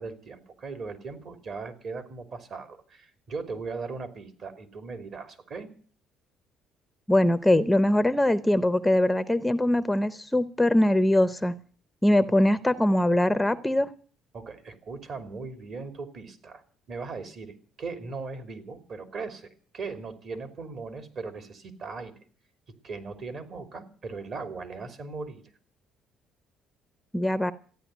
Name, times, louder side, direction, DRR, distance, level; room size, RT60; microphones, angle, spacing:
voice 1, 0.0-5.7 14.3-16.6 16.9-19.5 19.7-22.1 22.8-25.4, right 4 dB, 50° right, 9 dB, 3.1 m, -38 dB
voice 2, 7.1-11.5 12.0-13.9 27.1-27.5, left 1 dB, 5° left, 13 dB, 0.7 m, -22 dB
15.0 x 10.0 x 9.2 m, 0.44 s
cardioid pair, 110°, 0 cm